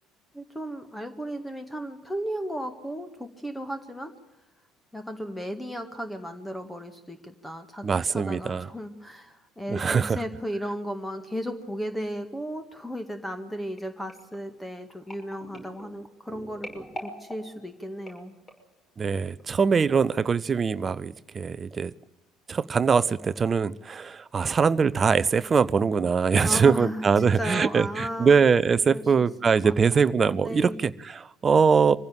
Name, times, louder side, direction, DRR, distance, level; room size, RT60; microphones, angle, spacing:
voice 1, 0.3-4.1 4.9-18.4 26.4-28.4 28.9-29.0 29.4-30.1 30.4-30.8, equal, 5° left, 8 dB, 2.0 m, -35 dB
voice 2, 7.8-8.7 9.7-10.2 19.0-21.9 22.5-32.0, right 5 dB, 30° right, 17 dB, 0.8 m, -22 dB
sound 1, 13.8-18.8 19.4-19.6 19.9-20.0, equal, 25° left, 6.1 m, -45 dB
25.0 x 15.5 x 9.0 m, 1.0 s
figure-of-eight pair, 60°, 0 cm